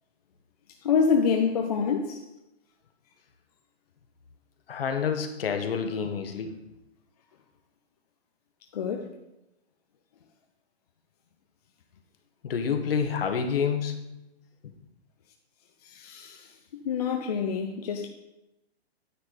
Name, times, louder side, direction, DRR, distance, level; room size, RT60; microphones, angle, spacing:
voice 1, 0.8-2.2 8.7-9.1 15.8-18.1, left 6 dB, 35° left, 0.6 m, -27 dB
voice 2, 4.7-6.5 12.4-14.0, left 6 dB, 60° left, 1.4 m, -28 dB
9.9 x 6.8 x 3.9 m
hypercardioid pair, 165°, 33 cm